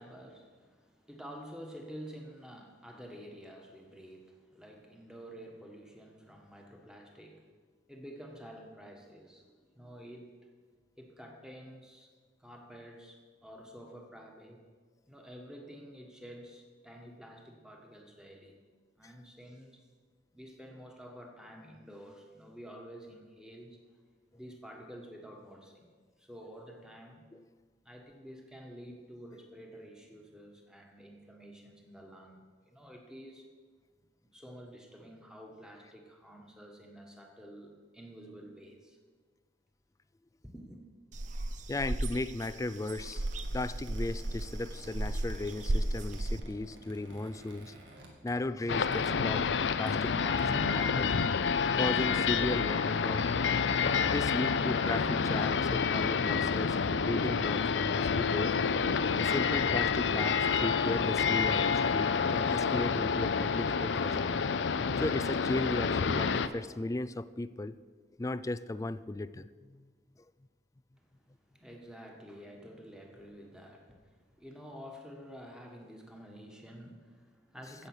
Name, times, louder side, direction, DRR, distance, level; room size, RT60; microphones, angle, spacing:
voice 1, 0.0-7.5 7.9-10.5 11.0-12.1 12.4-14.6 15.1-18.6 19.0-19.8 20.3-23.8 24.3-25.9 26.2-27.2 27.8-33.4 34.3-39.0 40.5-40.8 71.0-77.9, equal, 5° right, 1 dB, 1.6 m, -50 dB
sound 1, 41.1-46.4, right 1 dB, 45° right, 0.6 m, -34 dB
voice 2, 41.7-43.3 43.5-47.7 48.2-51.1 51.8-53.5 54.1-58.6 59.2-64.4 65.0-67.8 68.2-69.9, left 2 dB, 20° left, 15 dB, 0.4 m, -36 dB
Squeak, 42.5-48.6 48.9-49.2 49.7-50.4, right 1 dB, 80° right, 2.2 m, -54 dB
sound 2, 48.7-66.5, left 5 dB, 90° left, 0.5 m, -28 dB
16.0 x 7.0 x 6.3 m, 1.5 s
head